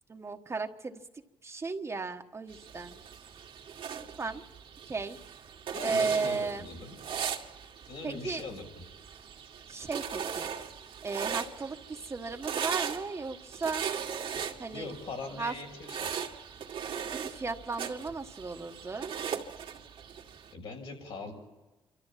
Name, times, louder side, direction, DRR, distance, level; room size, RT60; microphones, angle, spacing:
voice 1, 0.1-1.0 1.4-3.0 4.2-4.4 4.9-5.2 5.8-6.7 8.0-8.4 9.7-10.5 11.0-13.8 14.6-14.9 15.4-15.5 17.2-19.1, right 4 dB, 30° right, 5 dB, 1.4 m, -35 dB
sound 1, 2.5-20.5, right 7 dB, 70° right, 2.2 m, -39 dB
voice 2, 5.7-7.0 7.9-8.8 14.7-16.0 20.5-21.3, left 3 dB, 80° left, 1 dB, 6.3 m, -41 dB
28.5 x 13.0 x 7.5 m, 1.1 s
cardioid pair, 100°, 9 cm